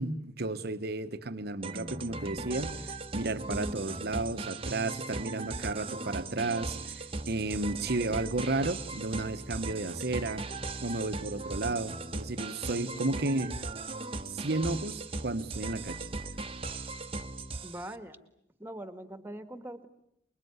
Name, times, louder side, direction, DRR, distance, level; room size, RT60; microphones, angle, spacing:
voice 1, 0.0-2.7 3.1-10.5 10.8-13.5 14.3-16.1, right 2 dB, 60° right, 11 dB, 1.2 m, -33 dB
sound 1, 1.6-17.9, right 3 dB, 30° right, 1.3 m, -38 dB
voice 2, 17.6-18.2 18.6-19.9, right 1 dB, 10° right, 10 dB, 1.9 m, -41 dB
25.0 x 22.0 x 9.6 m, 0.77 s
head